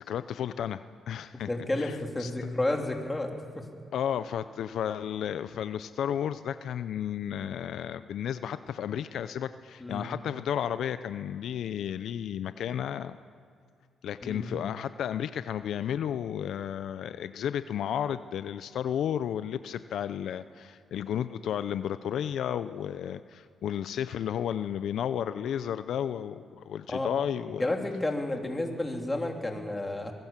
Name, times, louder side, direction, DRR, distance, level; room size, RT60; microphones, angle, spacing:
voice 1, 0.0-1.5 1.8-2.5 3.9-13.2 14.0-27.7, left 9 dB, 70° left, 12 dB, 0.6 m, -33 dB
voice 2, 1.5-3.7 9.8-10.0 14.2-14.5 26.9-27.1 27.6-30.1, left 2 dB, 15° left, 2 dB, 3.2 m, -31 dB
23.5 x 17.5 x 7.5 m, 2.4 s
cardioid pair, 90°, 0 cm